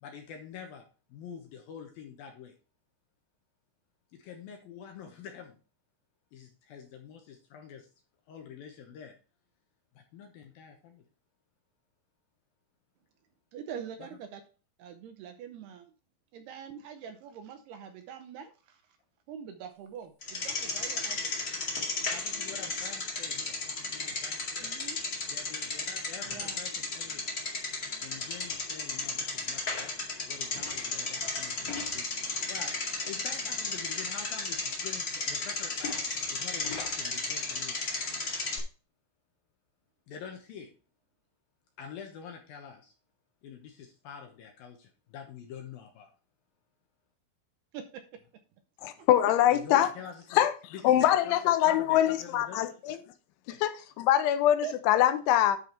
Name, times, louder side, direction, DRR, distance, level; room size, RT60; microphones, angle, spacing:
voice 1, 0.0-2.6 4.1-5.6 6.3-7.9 8.3-9.2 10.0-11.0 22.1-24.7 25.3-27.2 28.0-29.9 30.3-32.1 32.4-32.8 33.0-37.8 40.1-40.7 41.8-42.9 43.4-46.1 49.5-50.4 50.7-52.7 53.5-53.6, left 7 dB, 70° left, 2.3 m, -46 dB
voice 2, 13.5-14.4 14.8-15.9 16.3-19.0 19.3-21.3 24.6-25.0 26.3-26.6 47.7-48.2 49.0-49.1 54.6-54.7, right 8 dB, 80° right, 2.4 m, -44 dB
Bicycle, 20.2-38.6, left 3 dB, 55° left, 1.0 m, -34 dB
voice 3, 48.8-49.9 50.3-53.0 53.6-55.6, left 12 dB, 85° left, 3.1 m, -24 dB
11.0 x 5.0 x 4.4 m
omnidirectional pair, 5.4 m